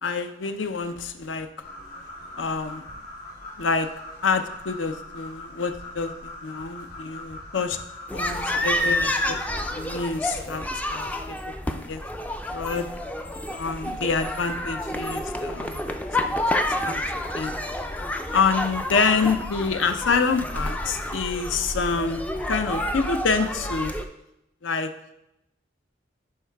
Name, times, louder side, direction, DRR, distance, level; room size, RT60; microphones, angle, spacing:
voice 1, 0.0-1.5 2.4-2.8 3.6-3.9 4.2-7.8 8.1-12.9 13.5-16.0 16.2-16.3 16.8-17.0 17.3-17.6 18.3-23.9 24.6-24.9, left 4 dB, 75° left, 9 dB, 0.6 m, -27 dB
sound 1, 1.6-10.0, left 2 dB, 45° left, 3.2 m, -41 dB
sound 2, 8.1-24.0, left 1 dB, 10° left, 0.3 m, -29 dB
11.0 x 4.7 x 3.4 m, 0.89 s
head